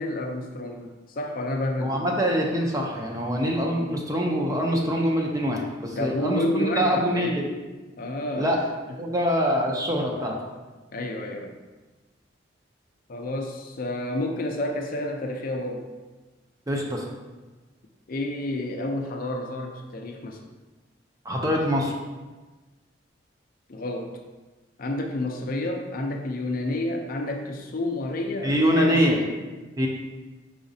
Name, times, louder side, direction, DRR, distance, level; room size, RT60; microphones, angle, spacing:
voice 1, 0.0-2.0 5.9-7.4 8.0-8.5 10.9-11.6 13.1-15.9 18.1-20.4 23.7-24.1 24.8-29.4, left 1 dB, 50° left, 2 dB, 0.5 m, -30 dB
voice 2, 1.8-7.5 8.4-8.6 9.0-10.4 16.7-17.1 21.2-21.9 28.4-29.2 29.8-29.9, equal, 20° right, -1 dB, 0.5 m, -24 dB
4.9 x 4.0 x 2.7 m, 1.2 s
head